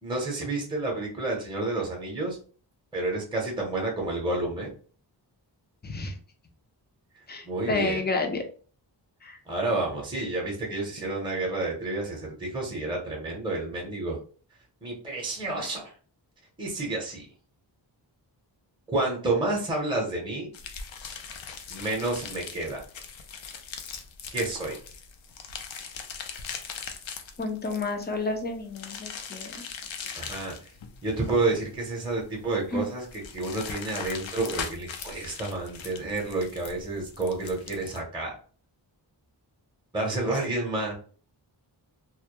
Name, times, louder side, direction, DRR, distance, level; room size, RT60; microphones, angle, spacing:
voice 1, 0.0-2.4 2.9-4.7 7.4-8.1 9.5-14.2 14.8-15.9 16.6-17.2 18.9-20.5 21.7-22.8 24.3-24.8 30.2-30.5 31.0-38.3 39.9-41.0, right 2 dB, 10° right, -1 dB, 0.7 m, -30 dB
voice 2, 5.8-6.1 7.3-8.4 9.2-9.4 27.4-29.6 32.7-32.9, left 3 dB, 25° left, 5 dB, 0.4 m, -30 dB
sound 1, 20.5-38.0, left 6 dB, 85° left, 0.5 m, -40 dB
2.2 x 2.0 x 2.8 m, 0.40 s
wide cardioid pair, 125°, 45 cm